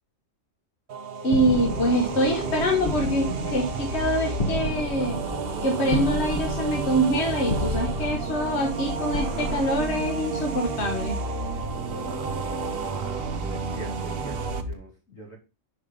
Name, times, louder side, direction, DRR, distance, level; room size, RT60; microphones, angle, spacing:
sound 1, 0.9-14.6, right 6 dB, 55° right, 0.9 m, -33 dB
voice 1, 1.2-5.2 5.6-11.2, equal, 60° left, 2 dB, 1.5 m, -25 dB
sound 2, 1.3-10.8, left 1 dB, 35° left, 1.0 m, -33 dB
sound 3, 1.5-14.7, right 1 dB, 85° right, 1.8 m, -34 dB
voice 2, 13.5-15.4, right 2 dB, 85° left, -2 dB, 3.5 m, -43 dB
5.6 x 5.0 x 5.1 m, 0.29 s
omnidirectional pair, 1.3 m